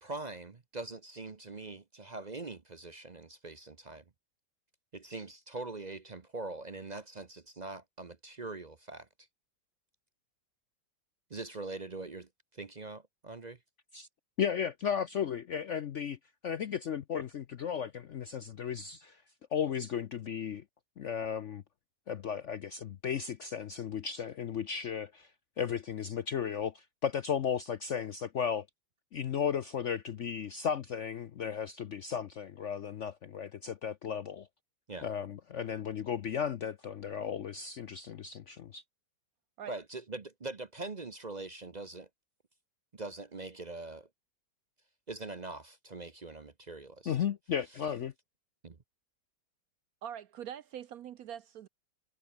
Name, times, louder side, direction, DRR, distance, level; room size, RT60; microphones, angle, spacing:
voice 1, 0.0-4.0 4.9-9.1 11.3-13.6 34.9-35.1 39.7-42.1 42.9-44.1 45.1-47.2 48.6-48.8, right 3 dB, 35° right, 0.7 m, -43 dB
voice 2, 14.4-19.2 19.5-20.6 21.0-21.6 22.1-25.3 25.6-28.7 29.1-34.5 35.0-38.8 47.1-48.1, left 8 dB, 60° left, 0.8 m, -35 dB
voice 3, 50.0-51.7, right 9 dB, 65° right, 1.0 m, -43 dB
omnidirectional pair, 2.0 m